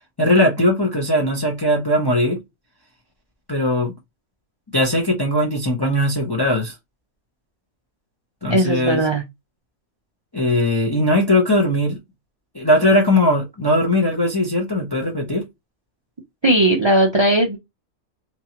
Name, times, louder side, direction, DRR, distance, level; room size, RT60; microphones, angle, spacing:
voice 1, 0.2-2.4 3.5-3.9 4.7-6.7 8.4-9.1 10.3-12.0 12.5-15.5, left 1 dB, 30° left, 0.5 m, -19 dB
voice 2, 8.5-9.2 16.4-17.6, right 1 dB, 45° right, 0.3 m, -17 dB
2.9 x 2.6 x 2.8 m
omnidirectional pair, 1.5 m